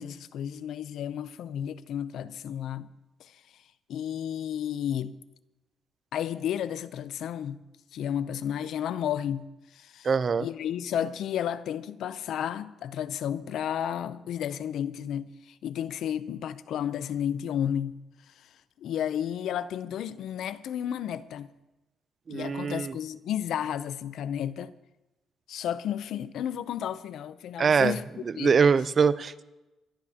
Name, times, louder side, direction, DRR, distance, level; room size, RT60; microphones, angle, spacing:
voice 1, 0.0-2.9 3.2-3.4 3.9-5.1 6.1-7.6 7.9-10.1 10.4-18.0 18.8-21.5 22.3-24.7 25.5-28.0 28.4-28.6, left 9 dB, 75° left, 0.6 m, -32 dB
voice 2, 10.0-10.5 22.3-22.9 27.6-27.9 28.4-29.4, right 5 dB, 45° right, 0.6 m, -23 dB
25.0 x 12.0 x 2.9 m
cardioid pair, 90°, 0 cm